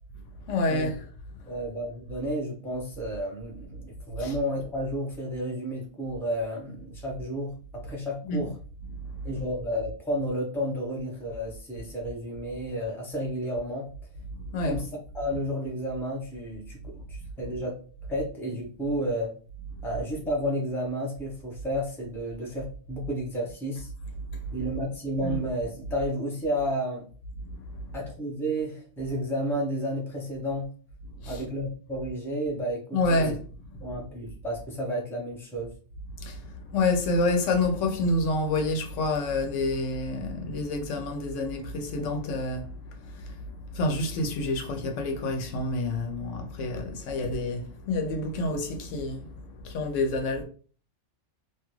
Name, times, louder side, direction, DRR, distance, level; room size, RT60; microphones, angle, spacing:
voice 1, 0.5-1.0 4.2-4.3 8.3-8.4 14.5-14.8 25.2-25.4 27.8-27.9 31.2-31.4 32.9-33.4 36.2-36.4 36.7-49.3 49.6-50.4, left 2 dB, 80° left, 1.0 m, -28 dB
voice 2, 1.5-8.5 9.2-13.9 14.6-17.8 18.1-19.3 19.8-23.9 24.5-27.1 27.9-30.7 31.3-33.4 33.8-35.7, equal, ahead, 0.6 m, -31 dB
3.0 x 2.3 x 3.0 m
omnidirectional pair, 1.3 m